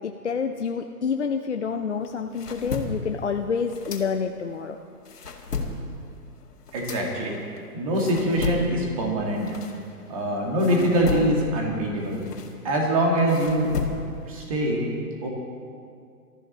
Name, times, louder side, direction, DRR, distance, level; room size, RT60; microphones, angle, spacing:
voice 1, 0.0-4.8, left 6 dB, 50° left, 5 dB, 0.6 m, -28 dB
sound 1, 2.0-4.6 4.9-10.2 10.6-14.3, left 4 dB, 75° left, 2.3 m, -34 dB
voice 2, 6.7-7.4 7.7-9.5 10.1-12.2 12.6-13.7 14.3-14.8 15.2-15.3, right 1 dB, 20° right, -1 dB, 1.9 m, -23 dB
20.5 x 13.5 x 4.1 m, 2.3 s
hypercardioid pair, 175°, 47 cm